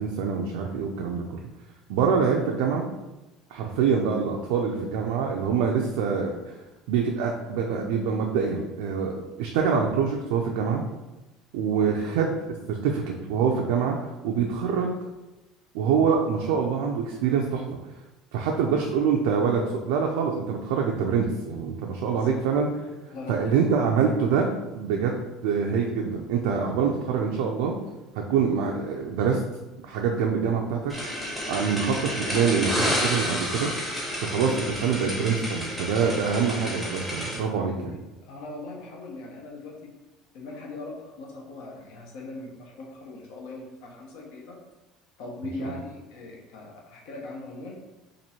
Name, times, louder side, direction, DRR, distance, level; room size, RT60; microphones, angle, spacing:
voice 1, 0.0-1.4 1.9-2.8 3.5-6.4 6.9-10.8 11.5-12.3 12.7-14.0 14.2-15.0 15.7-17.6 18.3-22.7 23.3-24.5 24.7-27.7 28.3-29.4 29.8-30.9 31.5-33.7 34.2-37.9, right 6 dB, 80° right, 1 dB, 0.4 m, -25 dB
voice 2, 23.1-23.6 37.6-37.7 38.3-39.9 40.3-44.6 45.2-47.8, left 2 dB, 65° left, -1 dB, 0.9 m, -40 dB
sound 1, 30.9-37.4, equal, 5° left, 0.8 m, -30 dB
3.0 x 2.6 x 4.2 m, 1.0 s
cardioid pair, 170°, 0 cm